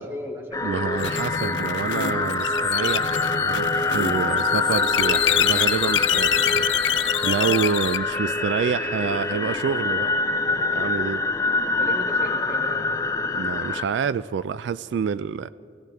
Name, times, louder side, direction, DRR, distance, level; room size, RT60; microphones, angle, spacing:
voice 1, 0.0-1.0 7.2-7.6 11.6-13.0, left 1 dB, 15° right, 1.8 m, -36 dB
sound 1, 0.5-13.8, left 3 dB, 20° left, 0.4 m, -25 dB
voice 2, 0.6-10.1 10.5-11.2 13.3-15.5, right 6 dB, 85° right, 0.3 m, -28 dB
sound 2, 1.0-8.0, left 11 dB, 90° left, 0.5 m, -26 dB
sound 3, 1.1-10.2, left 2 dB, ahead, 1.5 m, -36 dB
21.0 x 16.0 x 3.4 m
head